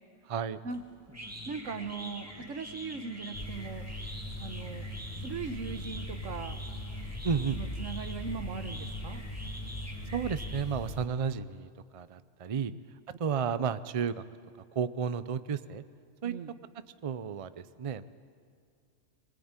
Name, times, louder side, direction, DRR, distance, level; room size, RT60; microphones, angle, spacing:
voice 1, 0.3-0.6 7.2-7.6 10.1-12.7 13.2-14.2 14.7-15.8 16.2-16.3 17.0-18.0, right 6 dB, 40° right, 13 dB, 0.5 m, -32 dB
sound 1, 0.7-11.0, equal, 10° right, 2.4 m, -45 dB
voice 2, 1.5-3.8 4.4-4.9 5.2-6.6 7.6-9.2 16.2-16.5, right 5 dB, 70° right, 9 dB, 1.5 m, -39 dB
sound 2, 3.3-11.1, left 1 dB, 30° left, 1.4 m, -40 dB
22.5 x 20.0 x 8.9 m, 2.2 s
omnidirectional pair, 1.4 m